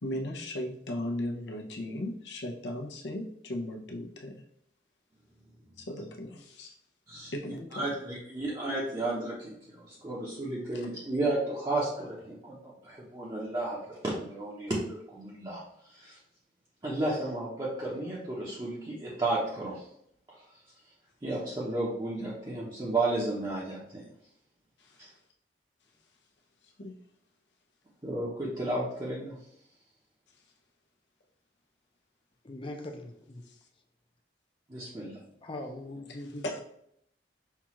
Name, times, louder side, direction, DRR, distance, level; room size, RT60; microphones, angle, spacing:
voice 1, 0.0-4.3 5.8-6.7 7.3-7.9 24.8-25.0 26.6-26.9 33.4-33.6 36.1-36.2 36.4-36.6, left 1 dB, 85° left, 1 dB, 0.7 m, -37 dB
voice 2, 7.7-16.2 16.8-19.9 20.3-20.4 21.2-24.0 25.0-25.1 28.0-29.4 34.7-35.2, right 2 dB, 25° right, -6 dB, 0.7 m, -33 dB
voice 3, 32.4-33.4 35.4-36.6, left 1 dB, 30° left, 3 dB, 0.5 m, -41 dB
5.7 x 2.4 x 3.0 m, 0.73 s
head